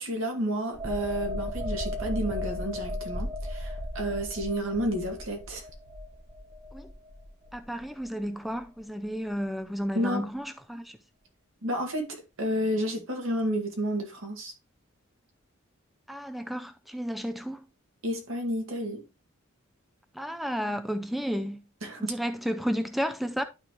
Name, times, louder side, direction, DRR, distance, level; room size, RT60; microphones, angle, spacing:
voice 1, 0.0-5.6 9.9-10.3 11.6-14.5 18.0-19.0 21.8-22.1, equal, 70° right, 2.2 m, -31 dB
sound 1, 0.7-8.2 8.5-8.7, left 1 dB, 20° right, 1.0 m, -36 dB
voice 2, 7.5-11.0 16.1-17.6 20.1-21.6 22.0-23.4, equal, ahead, 0.4 m, -32 dB
12.0 x 4.4 x 3.0 m
head